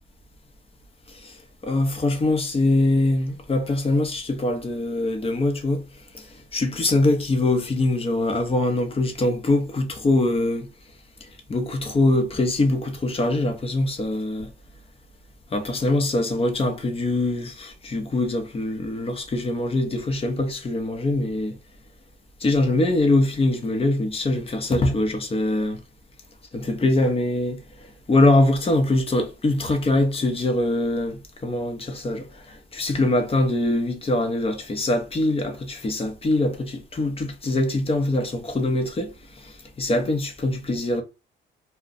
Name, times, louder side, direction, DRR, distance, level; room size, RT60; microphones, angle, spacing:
voice 1, 1.6-5.8 6.1-10.7 11.2-14.5 15.5-21.6 22.4-25.8 26.5-41.0, left 2 dB, 30° left, 0.8 m, -23 dB
2.4 x 2.2 x 3.8 m
cardioid pair, 90°, 20 cm